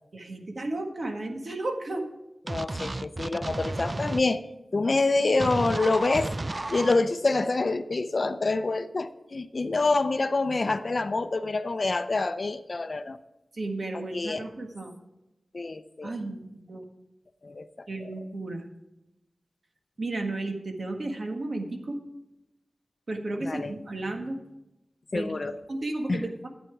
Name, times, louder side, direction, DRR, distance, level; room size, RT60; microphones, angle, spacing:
voice 1, 0.1-2.1 13.6-14.9 16.0-16.8 17.9-18.6 20.0-22.0 23.1-24.4 25.1-25.3 25.7-26.5, right 2 dB, 55° right, 3 dB, 1.6 m, -33 dB
voice 2, 2.5-4.4 4.7-6.3 6.7-13.2 13.9-14.5 15.5-16.2 17.4-18.1 23.4-23.7 25.1-25.6 26.1-26.2, left 3 dB, 50° left, 11 dB, 0.6 m, -27 dB
sound 1, 2.5-4.2 5.4-6.9, right 2 dB, 30° right, 0.3 m, -32 dB
12.0 x 9.0 x 4.7 m, 0.95 s
wide cardioid pair, 100°, 0 cm